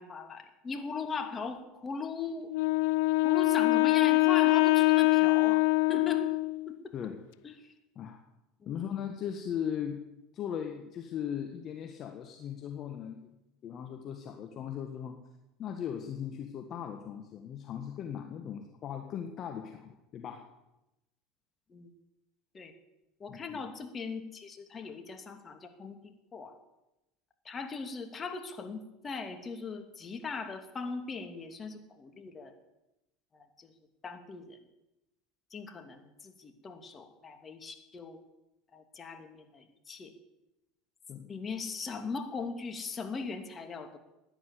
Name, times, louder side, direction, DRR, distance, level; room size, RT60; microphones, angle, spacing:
voice 1, 0.0-2.5 3.2-5.6 5.9-6.3 6.7-6.9 7.4-7.5 8.7-8.8 21.7-21.9 22.5-22.7 23.2-26.5 27.4-32.5 33.3-33.7 34.0-34.6 35.5-38.2 38.7-40.1 41.2-44.0, left 4 dB, 30° left, 6 dB, 2.7 m, -39 dB
Wind instrument woodwind instrument, 2.5-6.7, left 23 dB, 70° left, 0.5 m, -24 dB
voice 2, 8.6-10.0 10.3-13.3 13.6-15.2 15.6-20.5 23.3-23.6 24.8-24.9 41.1-41.3, left 8 dB, 45° left, 5 dB, 1.7 m, -38 dB
15.5 x 10.0 x 8.4 m, 0.93 s
hypercardioid pair, 80°, 0 cm